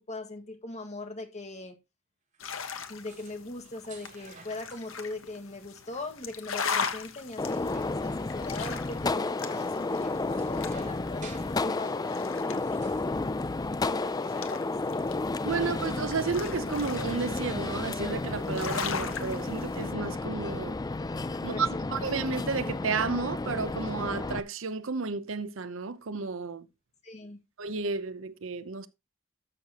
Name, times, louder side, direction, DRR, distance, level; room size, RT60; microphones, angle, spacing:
voice 1, 0.0-1.8 2.9-12.8 13.8-14.7 21.3-21.9 27.0-27.4, left 2 dB, 35° left, 1.8 m, -40 dB
sound 1, 2.3-2.4 2.7-4.9 6.7-8.8 9.1-13.5 13.9-14.0, right 4 dB, 40° right, 5.3 m, -54 dB
sound 2, 2.4-19.9, left 6 dB, 75° left, 1.3 m, -40 dB
Gunshot gunfire, 7.4-24.4, left 3 dB, 20° left, 0.4 m, -32 dB
voice 2, 15.4-20.8 21.4-26.7 27.6-28.9, right 4 dB, 70° right, 0.8 m, -32 dB
13.0 x 6.7 x 2.9 m
head